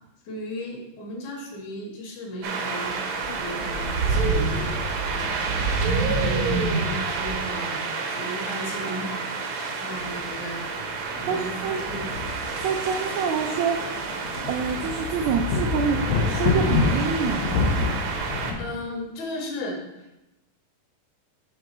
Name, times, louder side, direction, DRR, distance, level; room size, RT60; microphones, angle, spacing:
voice 1, 0.3-4.7 5.1-7.8 8.1-9.3 9.8-10.7 11.2-12.1 18.6-20.2, equal, 65° left, 0 dB, 2.4 m, -35 dB
sound 1, 2.4-18.5, right 4 dB, 70° right, 1.6 m, -28 dB
sound 2, 10.0-10.2 10.5-10.6 11.5-13.0 13.3-13.4 14.0-18.7, left 4 dB, 85° left, 2.4 m, -27 dB
voice 2, 11.3-11.8 12.6-14.0 14.5-16.0 16.3-17.5, right 6 dB, 85° right, 4 dB, 1.6 m, -26 dB
6.0 x 3.6 x 5.9 m, 0.94 s
omnidirectional pair, 3.8 m